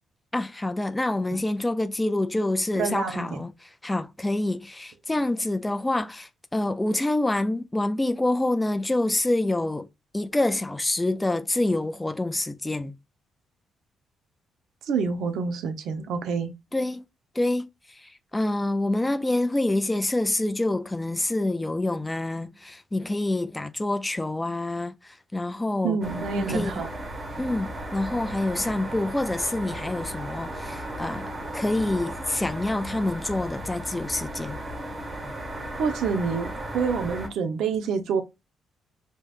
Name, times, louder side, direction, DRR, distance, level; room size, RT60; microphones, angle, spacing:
voice 1, 0.3-9.9 10.1-12.9 16.7-17.0 17.3-26.0 26.4-26.7 27.4-34.6, left 2 dB, 15° left, 0.5 m, -27 dB
voice 2, 2.8-3.4 14.8-16.5 25.8-26.9 35.8-38.2, right 5 dB, 75° right, 1.0 m, -27 dB
sound 1, 26.0-37.3, right 1 dB, 30° right, 1.9 m, -35 dB
5.3 x 3.3 x 2.5 m
cardioid pair, 90°, 0 cm